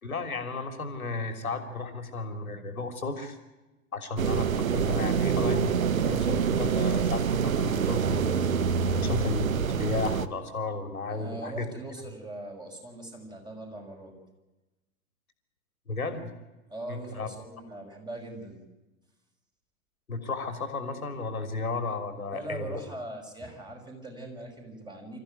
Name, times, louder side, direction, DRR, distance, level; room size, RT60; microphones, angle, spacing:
voice 1, 0.0-3.4 3.9-8.4 9.0-9.5 9.8-11.7 15.9-16.3 16.9-17.3 20.1-22.8, left 3 dB, 80° left, 8 dB, 3.4 m, -33 dB
sound 1, 4.2-10.3, right 6 dB, 70° right, 1.2 m, -26 dB
voice 2, 11.1-14.1 16.7-18.6 22.3-25.2, right 1 dB, 10° right, 2 dB, 5.9 m, -41 dB
26.0 x 14.5 x 9.3 m, 1.1 s
figure-of-eight pair, 100°, 42 cm